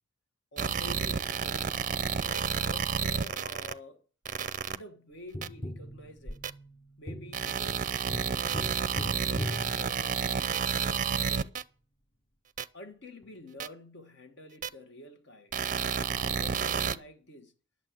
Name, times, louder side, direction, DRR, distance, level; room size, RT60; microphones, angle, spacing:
voice 1, 0.5-1.7 2.2-4.0 4.7-6.4 7.0-11.5 12.7-15.5 15.8-17.5, left 1 dB, 60° left, 1.5 m, -49 dB
sound 1, 0.6-3.7 4.3-4.8 5.4-5.5 6.4-6.5 7.3-11.6 12.6-12.7 13.6-13.7 14.6-14.7 15.5-17.0, right 7 dB, 40° right, 0.5 m, -30 dB
Tap, 5.3-10.6 13.2-13.3, equal, 25° left, 0.9 m, -40 dB
11.0 x 7.1 x 9.5 m
head